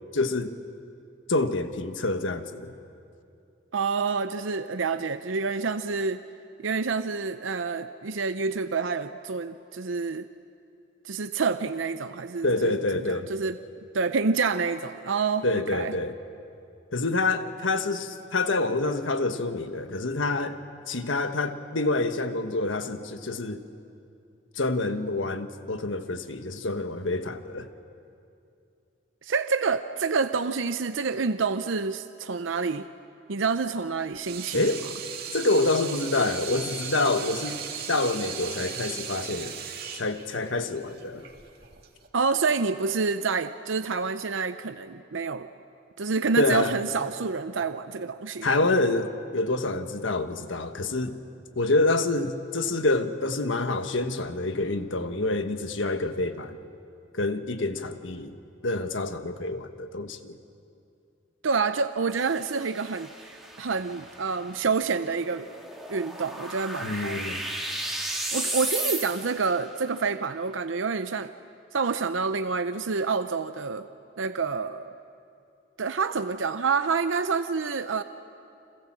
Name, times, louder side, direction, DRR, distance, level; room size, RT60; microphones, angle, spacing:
voice 1, 0.1-0.5 1.3-2.7 12.4-13.3 15.4-16.2 16.9-20.6 20.9-23.6 24.6-27.7 34.5-34.8 35.3-39.5 39.9-41.2 46.4-46.8 48.4-51.2 51.5-56.6 57.1-58.3 58.6-60.4 66.8-67.4, left 2 dB, 80° left, 8 dB, 1.4 m, -27 dB
voice 2, 3.7-6.2 6.6-10.3 11.0-12.8 13.1-13.6 13.9-15.9 29.2-32.9 33.3-34.6 42.1-45.5 46.0-48.6 61.4-63.1 63.6-65.5 65.9-67.2 68.3-71.3 71.7-73.9 74.2-74.9 75.8-78.0, right 4 dB, 80° right, 10 dB, 0.7 m, -28 dB
Water tap faucet / Sink (filling or washing), 34.0-42.1, right 7 dB, 50° right, 2.3 m, -37 dB
sound 1, 62.1-69.5, right 1 dB, ahead, 2.8 m, -35 dB
30.0 x 26.0 x 7.5 m, 2.6 s
head